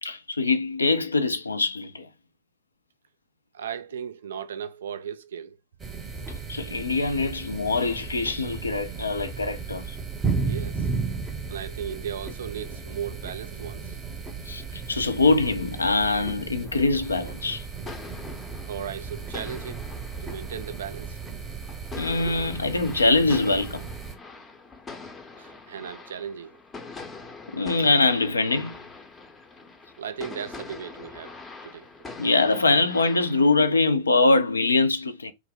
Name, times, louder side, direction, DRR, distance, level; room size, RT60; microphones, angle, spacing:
voice 1, 0.0-2.1 6.5-10.0 14.5-17.7 22.0-23.9 27.5-28.8 32.2-35.3, left 3 dB, 80° left, 0.3 m, -23 dB
voice 2, 3.5-5.6 10.5-10.9 11.5-14.0 18.7-19.8 20.2-21.2 25.4-26.6 30.0-31.9, right 8 dB, 65° right, 0.3 m, -36 dB
sound 1, 5.8-24.2, right 5 dB, 15° right, 0.7 m, -35 dB
sound 2, 16.6-33.9, left 4 dB, 15° left, 0.6 m, -44 dB
2.3 x 2.0 x 3.7 m
figure-of-eight pair, 90°, 0 cm